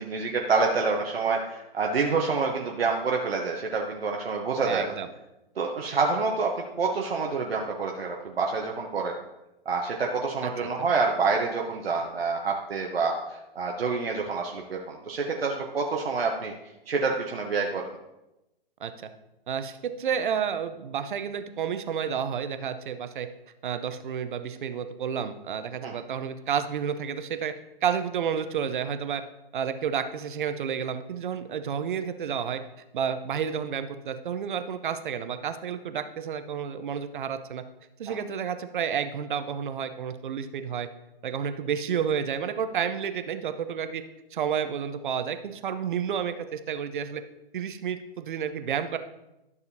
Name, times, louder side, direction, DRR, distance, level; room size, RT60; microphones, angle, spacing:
voice 1, 0.0-4.8 5.6-9.1 9.6-16.5 16.9-17.9 25.8-25.9 38.1-38.2, right 4 dB, 80° right, 0 dB, 1.0 m, -27 dB
voice 2, 4.6-5.1 10.4-10.9 18.8-19.1 19.5-23.3 23.6-27.5 27.8-29.2 29.5-32.6 32.9-37.6 38.0-40.9 41.2-44.0 44.3-47.2 47.5-49.0, right 7 dB, 55° right, 10 dB, 0.8 m, -30 dB
12.0 x 6.6 x 2.7 m, 0.94 s
hypercardioid pair, 135°, 30 cm